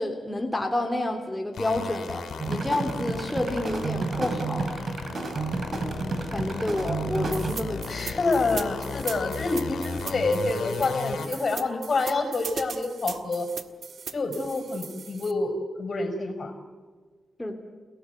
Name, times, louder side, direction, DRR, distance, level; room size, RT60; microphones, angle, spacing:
voice 1, 0.0-4.8 6.3-7.8 17.4-17.5, left 1 dB, 10° left, 2 dB, 3.3 m, -29 dB
sound 1, 1.5-11.3, left 5 dB, 85° left, 3.7 m, -35 dB
sound 2, 2.4-7.5, right 4 dB, 60° right, 3.1 m, -31 dB
sound 3, 7.3-15.3, right 6 dB, 75° right, 1.6 m, -39 dB
voice 2, 7.9-13.5 14.1-15.5 15.8-16.5, left 3 dB, 55° left, 9 dB, 5.1 m, -27 dB
30.0 x 18.0 x 8.1 m, 1.5 s
cardioid pair, 70°, 0 cm